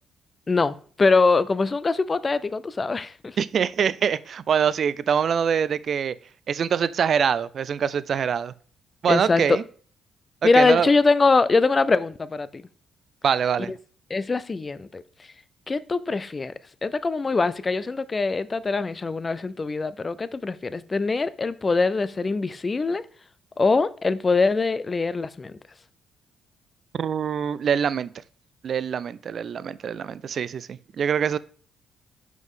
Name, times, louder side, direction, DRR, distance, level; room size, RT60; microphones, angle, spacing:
voice 1, 0.5-3.4 9.1-9.6 10.4-12.6 13.7-13.8 14.1-15.0 15.7-16.5 16.8-23.0 23.6-25.5, left 3 dB, 30° left, 0.4 m, -23 dB
voice 2, 3.4-6.1 6.5-8.5 9.0-9.6 10.6-10.9 13.2-13.7 26.9-28.1 28.6-31.4, right 7 dB, 55° right, 0.3 m, -24 dB
6.1 x 5.3 x 3.7 m
cardioid pair, 90°, 0 cm